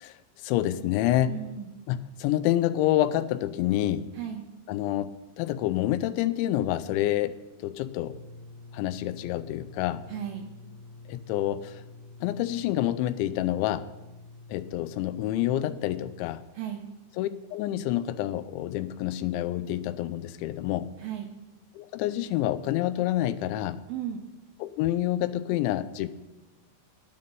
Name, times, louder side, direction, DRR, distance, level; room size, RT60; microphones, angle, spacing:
voice 1, 0.0-1.4 1.9-4.1 4.7-8.2 8.7-10.0 11.1-11.8 12.2-13.9 14.5-16.4 17.2-20.9 21.8-23.8 24.6-26.1, left 13 dB, 90° left, 14 dB, 3.0 m, -28 dB
voice 2, 1.3-1.7 4.1-4.4 10.1-10.5 16.5-16.9 21.0-21.3 23.9-24.2, right 10 dB, 85° right, 4 dB, 2.1 m, -35 dB
sound 1, 7.9-16.2, left 3 dB, 45° left, 3.5 m, -48 dB
10.5 x 9.5 x 8.8 m, 1.1 s
omnidirectional pair, 5.2 m